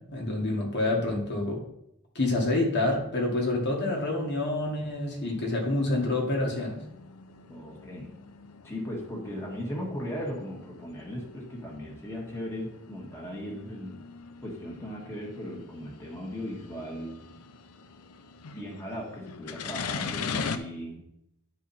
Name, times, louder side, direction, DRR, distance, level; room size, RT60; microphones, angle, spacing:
voice 1, 0.0-1.6 2.1-6.8, left 2 dB, 50° left, -1 dB, 1.7 m, -27 dB
sound 1, 3.8-20.6, left 6 dB, 85° left, 0.6 m, -42 dB
voice 2, 7.5-8.1 8.6-14.0 14.4-17.2 18.5-21.0, equal, 10° left, -3 dB, 1.7 m, -37 dB
10.5 x 4.8 x 4.3 m, 0.79 s
head